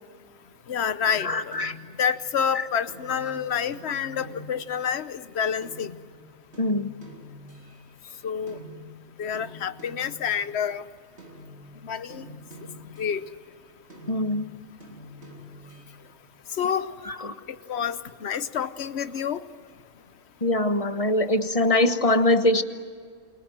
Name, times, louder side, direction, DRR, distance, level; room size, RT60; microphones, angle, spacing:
voice 1, 0.7-1.5 2.0-5.9 8.2-8.6 9.2-10.8 11.8-12.2 13.0-13.2 16.6-16.9 17.7-19.4, left 7 dB, 65° left, 14 dB, 1.1 m, -28 dB
sound 1, 1.1-8.2 8.5-10.8 11.2-13.5 13.9-16.0, left 1 dB, 60° right, 3.6 m, -47 dB
voice 2, 1.2-1.7 2.5-2.6 6.6-6.9 14.1-14.5 17.1-17.3 20.4-22.6, left 1 dB, 30° left, 10 dB, 1.1 m, -23 dB
29.0 x 22.5 x 7.7 m, 2.1 s
omnidirectional pair, 1.2 m